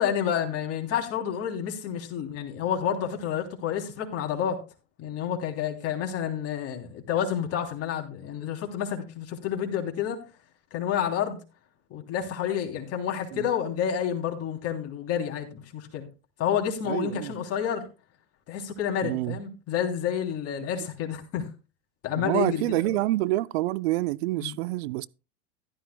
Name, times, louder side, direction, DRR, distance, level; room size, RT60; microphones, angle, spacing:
voice 1, 0.0-4.6 5.0-10.2 10.7-11.4 11.9-16.1 16.4-17.8 18.5-21.5 22.0-23.1 24.4-24.6, left 9 dB, 45° left, 3.2 m, -29 dB
voice 2, 16.9-17.3 19.0-19.4 22.2-25.1, right 17 dB, 65° right, 0.5 m, -27 dB
15.0 x 12.5 x 2.2 m
hypercardioid pair, 90°, 34 cm